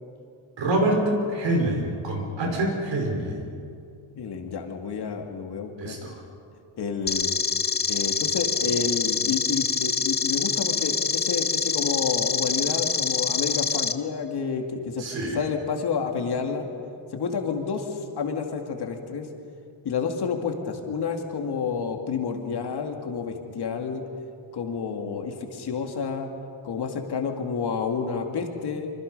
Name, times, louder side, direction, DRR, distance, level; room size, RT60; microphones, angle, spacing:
voice 1, 0.6-3.5 5.8-6.2 15.0-15.4, right 1 dB, 60° right, 2 dB, 5.2 m, -26 dB
voice 2, 4.2-6.0 6.8-7.3 7.9-15.1 15.3-16.7 17.1-19.3 19.8-24.0 24.5-26.3 26.6-28.9, left 5 dB, 50° left, 3 dB, 2.4 m, -29 dB
sound 1, 7.1-13.9, left 6 dB, 20° left, 0.6 m, -25 dB
25.5 x 25.5 x 5.4 m, 2.4 s
cardioid pair, 135°, 50 cm